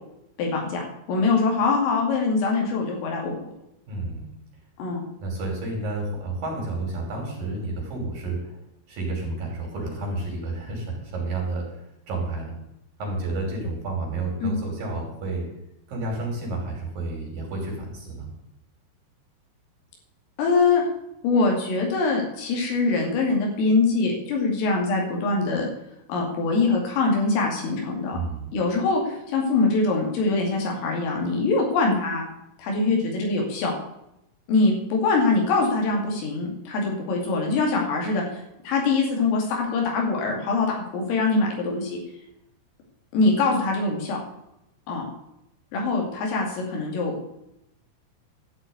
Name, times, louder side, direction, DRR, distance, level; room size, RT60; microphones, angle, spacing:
voice 1, 0.4-0.8 1.1-3.5 4.8-5.0 14.4-14.5 20.4-20.8 21.2-25.7 26.1-28.2 28.5-32.2 32.6-33.8 34.5-38.2 38.6-42.0 43.1-44.2 44.9-45.1 45.7-47.1, left 3 dB, 80° left, 0 dB, 5.0 m, -23 dB
voice 2, 3.9-4.3 5.2-8.6 8.9-11.8 12.1-12.6 13.0-15.4 15.9-18.3 28.1-28.5, right 2 dB, 45° right, 0 dB, 4.3 m, -30 dB
12.5 x 5.8 x 9.4 m, 0.84 s
omnidirectional pair, 5.9 m